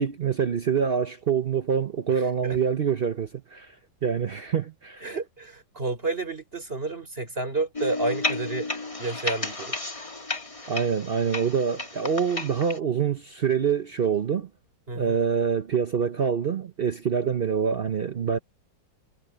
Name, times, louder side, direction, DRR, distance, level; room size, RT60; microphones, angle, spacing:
voice 1, 0.0-3.8 4.0-5.0 10.7-14.5 14.9-18.4, right 7 dB, 60° right, 0.6 m, -25 dB
voice 2, 2.1-2.6 5.0-8.7 9.0-9.8 14.9-15.2, right 3 dB, 30° right, 4.6 m, -30 dB
sound 1, 7.7-12.8, left 2 dB, 20° left, 1.9 m, -33 dB
omnidirectional pair, 2.0 m